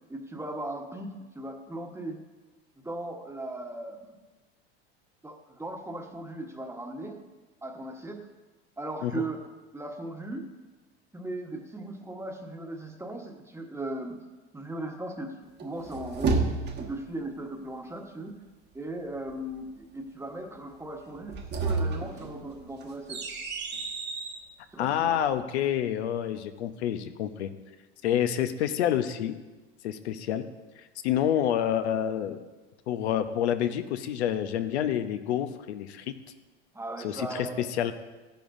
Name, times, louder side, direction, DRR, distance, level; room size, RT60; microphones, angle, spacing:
voice 1, 0.1-1.1 1.3-2.2 2.8-4.2 5.2-7.2 7.6-8.3 8.8-9.4 9.7-10.5 11.1-14.2 14.5-16.4 16.8-18.4 18.7-23.2 24.7-25.3 36.7-37.7, right 2 dB, 10° right, 3 dB, 1.2 m, -38 dB
sound 1, 15.6-17.1 21.2-24.4, right 3 dB, 30° right, 1.1 m, -31 dB
voice 2, 24.8-27.5 28.0-29.4 29.8-30.5 31.0-32.4 32.9-36.2 37.0-37.9, left 10 dB, 90° left, 9 dB, 0.8 m, -28 dB
13.5 x 10.5 x 2.6 m, 1.2 s
supercardioid pair, 110°, 32 cm